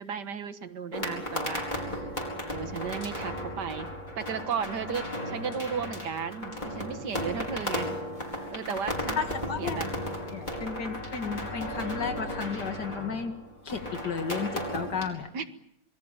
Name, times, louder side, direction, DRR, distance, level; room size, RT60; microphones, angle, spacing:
voice 1, 0.0-2.1 2.5-3.9 4.2-7.9 8.5-9.2 9.6-9.9 15.3-15.5, right 6 dB, 90° right, 10 dB, 2.0 m, -35 dB
sound 1, 0.9-15.1, left 1 dB, 25° left, 4.8 m, -35 dB
voice 2, 9.2-9.8 10.2-13.4 13.6-15.3, left 5 dB, 80° left, 6 dB, 2.9 m, -33 dB
26.0 x 22.0 x 7.3 m, 0.74 s
omnidirectional pair, 1.8 m